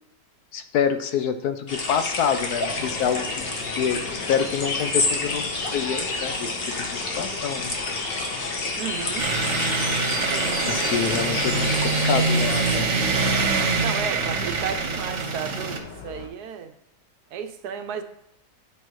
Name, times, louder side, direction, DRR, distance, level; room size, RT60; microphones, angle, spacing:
voice 1, 0.5-3.3 3.7-7.7 10.6-12.9, left 8 dB, 70° left, 9 dB, 1.0 m, -27 dB
sound 1, 1.7-12.8, left 3 dB, 45° left, 0.9 m, -29 dB
sound 2, 2.7-16.3, left 4 dB, 85° left, 1.6 m, -39 dB
voice 2, 8.8-9.3 13.8-16.7 17.3-18.0, right 7 dB, 75° right, 8 dB, 1.1 m, -33 dB
sound 3, 9.2-15.8, right 4 dB, 50° right, 1.1 m, -24 dB
9.8 x 5.4 x 3.1 m, 0.86 s
omnidirectional pair, 1.9 m